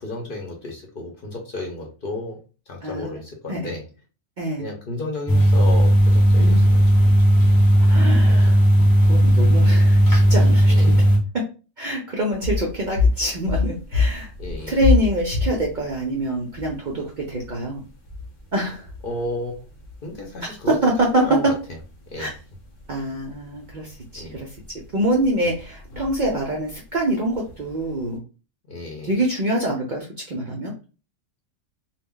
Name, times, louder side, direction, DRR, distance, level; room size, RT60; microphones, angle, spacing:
voice 1, 0.0-2.4 2.7-3.8 4.6-6.8 8.3-8.4 10.7-11.0 14.4-14.8 19.0-19.7 20.0-20.8 21.1-21.5 22.1-22.3 24.1-24.4 28.7-29.1, left 2 dB, 50° left, 1 dB, 0.8 m, -32 dB
sound 1, 5.3-11.2, equal, 25° left, 0.5 m, -15 dB
voice 2, 7.8-11.0 11.8-14.3 14.7-17.8 18.5-18.9 20.4-21.2 22.2-22.3 22.9-24.5 24.9-28.2 29.0-30.7, right 1 dB, 55° right, -1 dB, 0.5 m, -25 dB
sound 2, 12.3-28.2, left 4 dB, 75° left, 1.0 m, -29 dB
2.2 x 2.1 x 3.6 m, 0.34 s
omnidirectional pair, 1.3 m